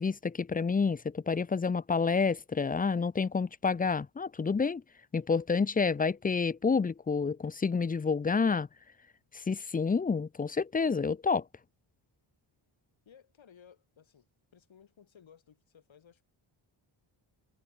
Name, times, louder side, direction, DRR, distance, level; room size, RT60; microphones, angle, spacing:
voice 1, 0.0-4.8 5.1-8.7 9.5-11.4, left 5 dB, 20° left, 0.5 m, -29 dB
voice 2, 13.1-14.3 14.5-16.2, left 8 dB, 65° left, 7.4 m, -58 dB
cardioid pair, 85°, 49 cm